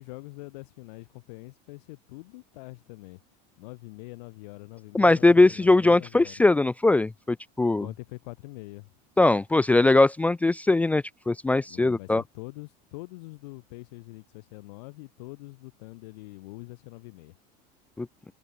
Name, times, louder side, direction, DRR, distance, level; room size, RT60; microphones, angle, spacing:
voice 1, 0.0-3.2 3.6-6.4 7.8-8.9 11.7-17.3, left 24 dB, 75° left, 7.4 m, -44 dB
voice 2, 4.9-7.9 9.2-12.2 18.0-18.1, left 2 dB, 5° left, 0.5 m, -21 dB
open air
cardioid pair, 155°, 21 cm